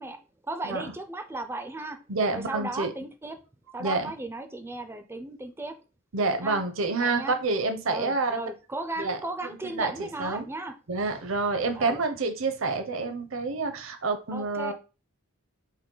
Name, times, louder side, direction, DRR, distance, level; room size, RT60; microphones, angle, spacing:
voice 1, 0.0-2.0 2.3-3.4 3.7-5.8 6.4-6.6 7.0-7.4 7.9-10.7 11.8-12.0 14.3-14.7, right 2 dB, 10° right, 8 dB, 0.3 m, -36 dB
voice 2, 2.1-2.9 3.8-4.1 6.1-8.4 9.0-9.2 9.6-10.5 10.9-14.7, right 3 dB, 65° right, 8 dB, 0.7 m, -28 dB
5.4 x 2.1 x 3.8 m, 0.32 s
head